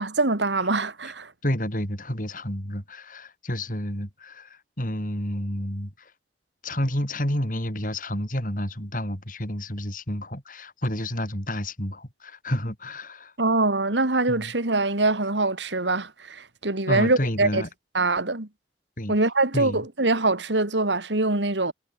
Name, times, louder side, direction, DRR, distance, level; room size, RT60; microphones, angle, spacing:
voice 1, 0.0-1.3 13.4-17.6 17.9-18.5 19.1-21.7, right 2 dB, 85° right, 2.6 m, -23 dB
voice 2, 1.4-6.1 6.6-13.3 14.3-14.5 16.9-17.7 19.0-19.2 19.5-19.8, left 1 dB, 50° left, 7.4 m, -30 dB
head